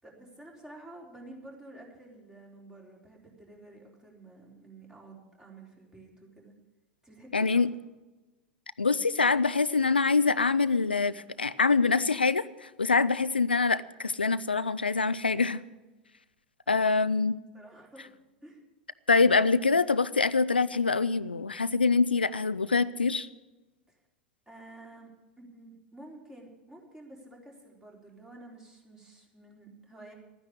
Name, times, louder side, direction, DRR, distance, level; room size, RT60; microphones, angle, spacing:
voice 1, 0.0-6.5 7.0-7.6 16.7-17.1 17.5-18.1 18.4-18.6 23.9-24.0 24.5-25.1 25.4-30.1, right 2 dB, 10° right, 0 dB, 3.9 m, -50 dB
voice 2, 7.3-7.7 8.8-15.6 16.7-17.4 19.1-23.3, left 4 dB, 85° left, 15 dB, 0.4 m, -25 dB
13.0 x 9.8 x 8.7 m, 1.1 s
figure-of-eight pair, 90°, 5 cm